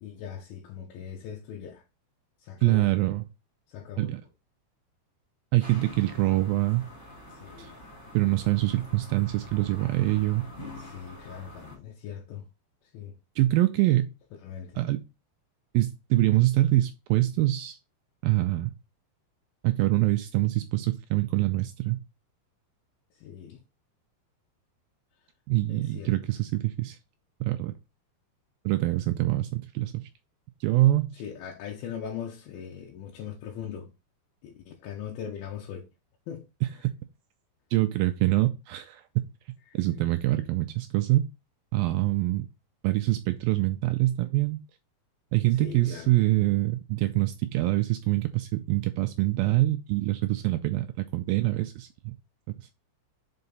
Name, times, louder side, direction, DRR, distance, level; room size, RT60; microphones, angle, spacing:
voice 1, 0.0-1.8 2.4-2.9 3.7-4.1 7.4-7.7 10.8-12.5 12.9-13.1 14.4-14.8 23.2-23.6 25.7-26.1 31.1-33.9 34.4-35.9 36.3-36.5 45.6-46.1, left 8 dB, 80° left, 2.7 m, -40 dB
voice 2, 2.6-3.2 4.0-4.2 5.5-6.9 7.6-7.7 8.1-10.4 13.4-14.1 14.8-15.0 15.7-17.8 18.2-18.7 19.6-22.0 25.5-27.0 27.4-27.7 28.7-30.0 30.6-31.1 36.6-36.7 37.7-39.0 39.7-41.3 41.7-42.5 42.8-44.6 45.3-52.1, right 17 dB, 80° right, 2.2 m, -25 dB
sound 1, 5.6-11.8, left 1 dB, 20° left, 1.7 m, -46 dB
5.7 x 5.5 x 4.0 m
omnidirectional pair, 4.6 m